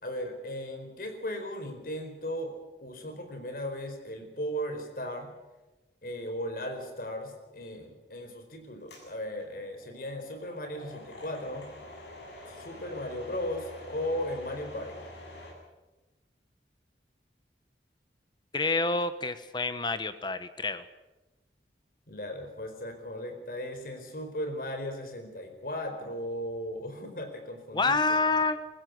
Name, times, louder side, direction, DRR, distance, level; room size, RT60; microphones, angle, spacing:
voice 1, 0.0-2.5 2.8-5.3 6.0-11.7 12.5-15.0 22.1-28.4, equal, 55° left, 5 dB, 4.5 m, -37 dB
sound 1, 8.9-15.5, left 1 dB, 80° left, 7.9 m, -47 dB
voice 2, 18.5-20.8 27.7-28.6, left 3 dB, 25° left, 12 dB, 1.0 m, -28 dB
22.5 x 15.5 x 9.5 m, 1.1 s
head